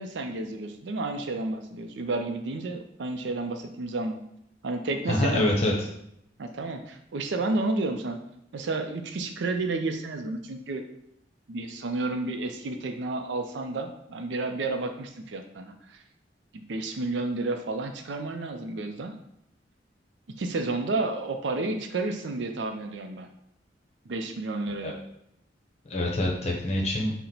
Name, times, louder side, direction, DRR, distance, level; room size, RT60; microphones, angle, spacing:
voice 1, 0.0-4.2 4.6-5.4 6.4-8.2 8.5-10.8 11.5-16.0 16.5-19.1 20.4-23.3 24.1-24.9, right 2 dB, 75° right, 6 dB, 0.5 m, -31 dB
voice 2, 5.1-5.7 24.8-24.9 25.8-27.1, left 1 dB, 35° left, -1 dB, 0.8 m, -25 dB
4.3 x 2.1 x 3.9 m, 0.76 s
head